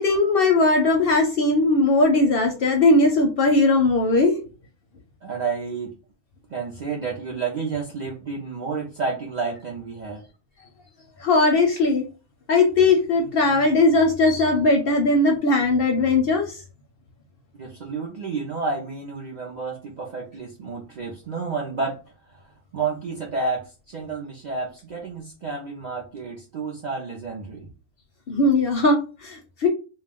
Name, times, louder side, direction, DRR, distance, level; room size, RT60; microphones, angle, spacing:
voice 1, 0.0-4.4 11.2-12.1 12.5-16.6 28.3-29.7, left 2 dB, 60° left, 2 dB, 0.7 m, -19 dB
voice 2, 5.2-5.9 6.5-10.2 17.6-22.0 22.7-27.7, right 4 dB, 55° right, -3 dB, 0.5 m, -30 dB
2.3 x 2.2 x 3.4 m, 0.34 s
omnidirectional pair, 1.3 m